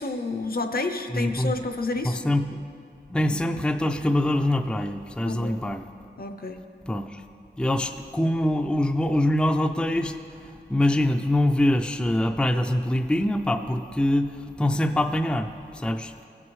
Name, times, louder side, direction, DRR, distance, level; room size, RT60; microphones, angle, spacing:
voice 1, 0.0-2.2 5.2-5.7 6.2-6.6, left 3 dB, 55° left, 6 dB, 0.6 m, -30 dB
voice 2, 1.1-1.5 2.0-2.6 3.1-5.8 6.9-7.1 7.6-10.1 10.7-14.3 14.6-15.5 15.8-16.1, left 1 dB, 5° left, 6 dB, 0.4 m, -24 dB
16.5 x 6.1 x 3.1 m, 2.5 s
wide cardioid pair, 45°, 19 cm